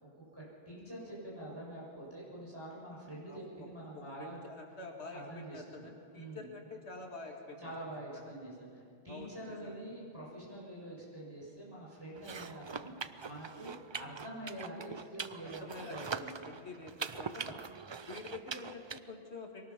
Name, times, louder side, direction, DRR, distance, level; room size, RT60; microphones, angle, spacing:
voice 1, 0.3-4.4 5.1-6.5 7.6-16.5 17.4-17.7, right 1 dB, 20° right, -5 dB, 7.0 m, -46 dB
voice 2, 3.3-3.7 3.9-7.7 8.1-8.2 9.1-9.8 15.4-17.6 18.0-19.7, left 3 dB, 80° left, 1 dB, 2.3 m, -47 dB
sound 1, 12.2-19.0, right 5 dB, 40° right, 0.4 m, -43 dB
23.5 x 18.5 x 6.0 m, 2.4 s
omnidirectional pair, 1.1 m